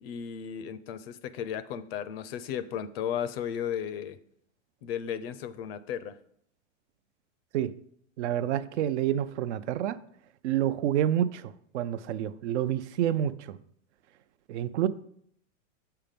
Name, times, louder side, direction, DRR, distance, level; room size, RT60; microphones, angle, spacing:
voice 1, 0.0-4.2 4.8-6.2, left 9 dB, 50° left, 15 dB, 0.6 m, -35 dB
voice 2, 8.2-10.0 10.4-13.6 14.5-14.9, right 11 dB, 60° right, 13 dB, 0.6 m, -28 dB
6.9 x 5.7 x 5.2 m, 0.68 s
supercardioid pair, 140°, 39 cm